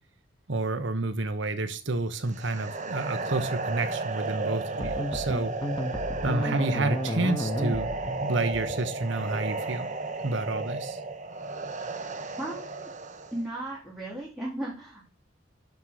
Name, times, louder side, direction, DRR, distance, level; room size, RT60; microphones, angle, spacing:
voice 1, 0.5-5.5 6.2-7.9 8.3-9.9 10.2-11.0, right 2 dB, 65° right, 10 dB, 1.1 m, -29 dB
sound 1, 2.3-13.4, right 3 dB, 40° right, 1.1 m, -34 dB
sound 2, 4.8-9.4, equal, 25° left, 1.3 m, -32 dB
voice 2, 6.4-6.9 12.4-12.8 13.3-15.1, right 1 dB, ahead, -6 dB, 2.4 m, -36 dB
12.0 x 4.6 x 4.9 m, 0.36 s
head